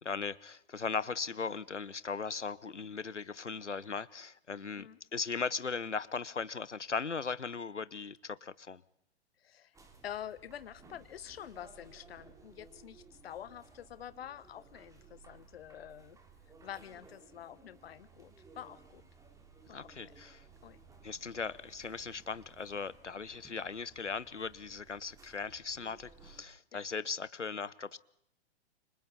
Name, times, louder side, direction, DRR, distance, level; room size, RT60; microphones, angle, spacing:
voice 1, 0.0-8.8 19.7-20.4 21.0-28.0, left 5 dB, 90° left, 19 dB, 1.0 m, -38 dB
voice 2, 9.4-9.8 10.0-16.2 16.6-19.0 19.7-20.0 20.2-20.3 20.6-20.8, left 10 dB, 60° left, 15 dB, 1.4 m, -47 dB
sound 1, 9.7-26.4, right 4 dB, 10° right, 3.1 m, -59 dB
29.5 x 25.5 x 4.3 m, 0.75 s
figure-of-eight pair, 115°, 35 cm